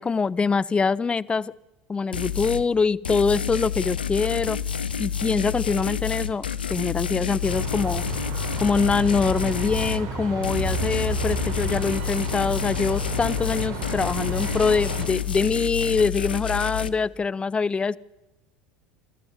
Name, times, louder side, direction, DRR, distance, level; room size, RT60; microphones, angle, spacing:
voice 1, 0.0-1.5 1.9-4.6 5.0-6.4 6.7-8.0 8.6-18.0, left 5 dB, 20° left, 20 dB, 0.6 m, -24 dB
sound 1, 2.1-2.7 3.0-10.0 10.4-16.9, left 8 dB, 90° left, 0.8 m, -29 dB
sound 2, 7.4-15.1, right 4 dB, 60° right, 3.8 m, -32 dB
27.5 x 13.5 x 7.3 m, 1.1 s
hypercardioid pair, 75°, 5 cm